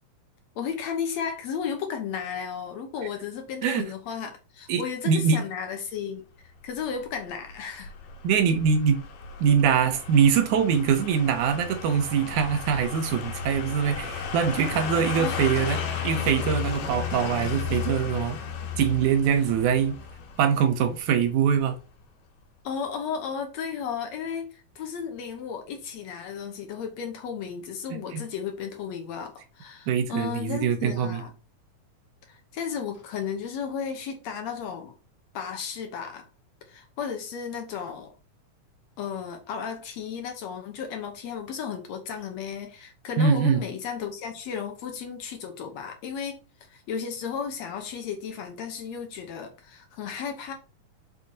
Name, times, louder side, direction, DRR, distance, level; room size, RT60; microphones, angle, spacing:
voice 1, 0.6-6.2 6.6-7.9 15.2-15.4 22.6-31.3 32.3-34.9 35.3-36.3 36.7-38.1 39.0-46.4 46.7-50.5, left 7 dB, 70° left, 2.0 m, -34 dB
voice 2, 4.7-5.4 8.2-9.0 9.4-18.4 18.8-20.0 20.4-21.8 27.9-28.2 29.9-31.2 43.2-43.7, right 7 dB, 75° right, 2.3 m, -23 dB
sound 1, 6.8-21.7 22.0-22.1, left 7 dB, 90° left, 2.9 m, -34 dB
6.8 x 5.8 x 2.8 m
omnidirectional pair, 3.7 m